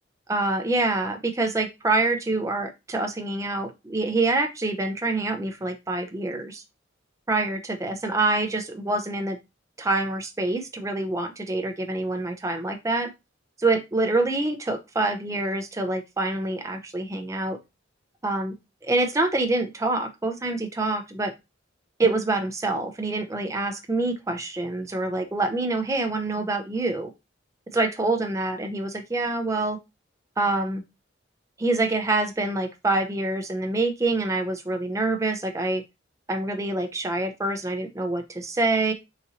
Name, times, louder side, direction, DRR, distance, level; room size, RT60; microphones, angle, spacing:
voice 1, 0.3-6.6 7.3-9.4 9.8-13.1 13.6-17.6 18.2-18.5 18.8-21.3 22.0-27.1 27.7-29.8 30.4-30.8 31.6-35.8 36.3-38.9, right 2 dB, 15° right, 6 dB, 0.5 m, -26 dB
4.0 x 2.6 x 2.7 m, 0.23 s
head